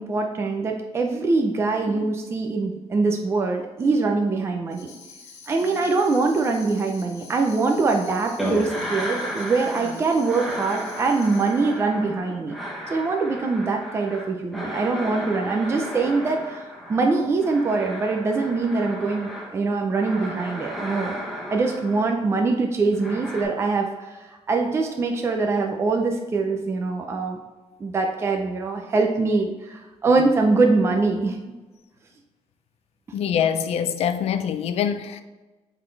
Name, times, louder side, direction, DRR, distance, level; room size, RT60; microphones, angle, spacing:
voice 1, 0.0-4.9 5.5-12.5 12.9-21.2 21.5-27.4 27.8-31.4, right 3 dB, 25° right, 0.5 m, -23 dB
sound 1, 1.8-2.1 3.8-4.1 5.6-5.9 7.6-7.9 9.8-10.1 12.2-12.4, right 4 dB, 75° right, 1.3 m, -40 dB
Tambourine, 4.7-11.8, left 5 dB, 90° left, 1.3 m, -46 dB
sound 2, 8.4-10.0 10.2-19.5 19.9-22.2 22.9-23.4, equal, ahead, 1.1 m, -34 dB
voice 2, 33.1-35.2, left 8 dB, 65° left, 0.5 m, -24 dB
8.7 x 4.0 x 3.2 m
cardioid pair, 180°, 11 cm